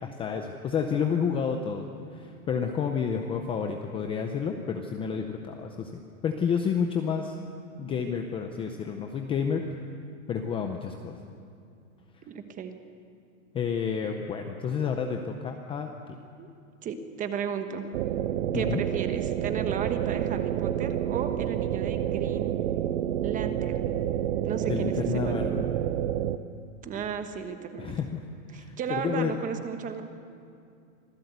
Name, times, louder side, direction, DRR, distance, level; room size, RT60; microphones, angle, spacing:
voice 1, 0.0-7.4 7.8-9.6 10.3-11.2 13.5-16.2 18.5-18.8 24.7-25.7 27.8-28.2 28.5-29.4, left 6 dB, 15° left, 4 dB, 0.6 m, -30 dB
voice 2, 12.2-12.8 16.4-16.5 16.8-17.9 18.5-22.5 23.2-24.0 24.4-25.4 26.8-27.9 28.5-30.0, right 7 dB, 20° right, 8 dB, 1.2 m, -34 dB
sound 1, 17.9-26.4, right 11 dB, 60° right, 1.0 m, -29 dB
25.5 x 15.0 x 8.1 m, 2.5 s
supercardioid pair, 155°, 42 cm